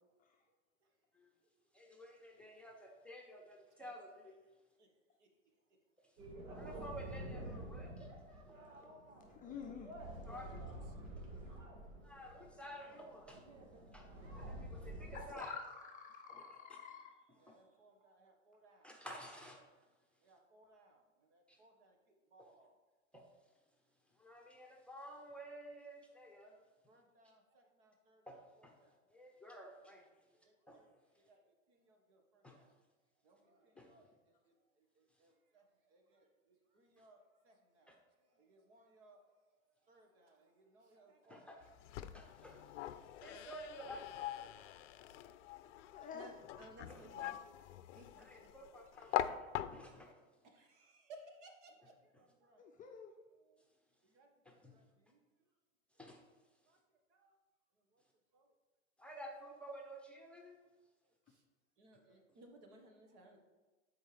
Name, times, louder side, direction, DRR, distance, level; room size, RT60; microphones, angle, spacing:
voice 1, 1.7-4.4 6.0-6.1 6.5-8.1 10.2-10.6 12.0-13.5 13.9-14.1 14.3-15.6 16.3-16.8 17.5-17.6 18.8-19.6 21.5-21.6 22.4-22.5 23.1-23.3 24.1-26.6 28.3-28.7 29.1-30.1 30.7-30.8 32.4-32.6 33.8-33.9 37.0-37.1 37.9-38.0 41.3-41.7 42.1-42.7 43.2-44.7 46.9-47.0 48.2-50.1 54.4-54.7 56.0-56.2 59.0-60.6, equal, 5° left, 0 dB, 0.9 m, -52 dB
sound 1, 6.2-15.2, right 1 dB, 75° right, 2.0 m, -49 dB
voice 2, 7.3-7.6 8.5-8.9 9.1-9.4 10.0-10.8 11.1-11.2 12.3-12.5 13.8-14.4 14.7-15.4 16.2-17.0 17.3-19.0 20.2-22.0 22.3-22.8 26.9-29.0 29.9-30.0 30.3-30.9 31.2-31.4 31.7-32.8 33.2-34.1 34.5-39.3 39.8-41.7 44.9-45.4 45.9-47.6 47.9-48.6 49.1-49.2 50.4-52.7 53.3-53.7 54.0-55.2 56.7-56.8 57.1-57.3 57.9-58.0 58.3-58.5 61.3-61.4 61.8-63.4, right 1 dB, 60° right, 3 dB, 1.7 m, -63 dB
voice 3, 9.3-9.9 15.1-17.1 45.9-46.3 52.6-53.1, left 6 dB, 20° left, 2 dB, 0.5 m, -49 dB
sound 2, 41.6-50.1, left 12 dB, 65° left, 0.5 m, -43 dB
11.5 x 4.7 x 3.4 m, 1.2 s
hypercardioid pair, 120°, 40 cm